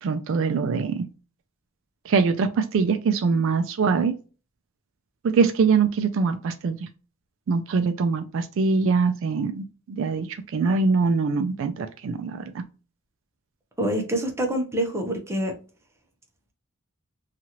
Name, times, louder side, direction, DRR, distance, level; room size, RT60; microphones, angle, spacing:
voice 1, 0.0-1.1 2.0-4.2 5.2-6.9 7.5-12.6, right 4 dB, 60° right, 0.3 m, -23 dB
voice 2, 13.8-15.5, right 1 dB, 10° right, 0.7 m, -26 dB
2.9 x 2.4 x 2.8 m
head